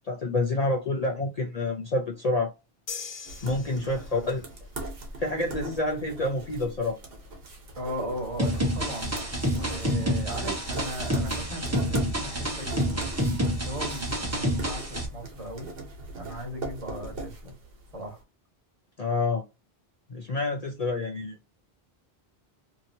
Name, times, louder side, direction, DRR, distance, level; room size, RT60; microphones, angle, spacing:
voice 1, 0.1-2.5 3.4-4.4 5.2-7.0 19.0-19.4 20.1-21.4, left 2 dB, 45° left, 0.6 m, -28 dB
sound 1, 2.9-4.4, left 6 dB, 75° left, 0.9 m, -40 dB
sound 2, 3.3-18.1, right 2 dB, 65° right, 1.1 m, -41 dB
voice 2, 3.7-4.4 7.8-9.1 9.7-13.0 13.4-15.7 16.1-17.5 17.9-18.2, equal, 35° right, 1.3 m, -37 dB
sound 3, 8.4-15.1, equal, 15° right, 0.7 m, -28 dB
2.8 x 2.8 x 2.6 m
omnidirectional pair, 1.0 m